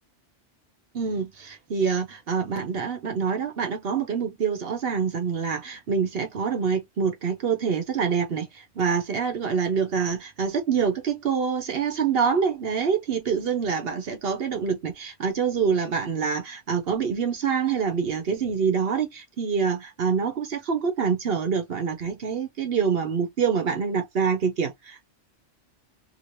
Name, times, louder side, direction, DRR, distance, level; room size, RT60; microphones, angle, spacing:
voice 1, 0.9-8.5 8.8-25.0, right 6 dB, 60° right, 0.9 m, -26 dB
2.8 x 2.8 x 3.0 m
omnidirectional pair, 1.2 m